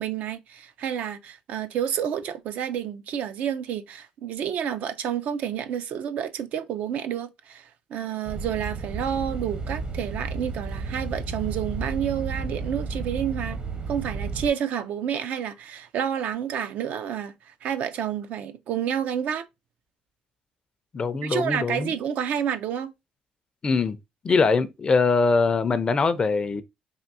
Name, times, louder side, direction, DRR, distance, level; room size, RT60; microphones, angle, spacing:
voice 1, 0.0-13.6 13.9-19.5 21.2-22.9, right 9 dB, 70° right, 0.4 m, -29 dB
sound 1, 8.3-14.5, right 4 dB, 40° right, 0.7 m, -32 dB
voice 2, 20.9-21.9 23.6-24.0 24.2-26.6, left 4 dB, 30° left, 0.4 m, -22 dB
3.5 x 2.6 x 2.6 m
cardioid pair, 100°, 3 cm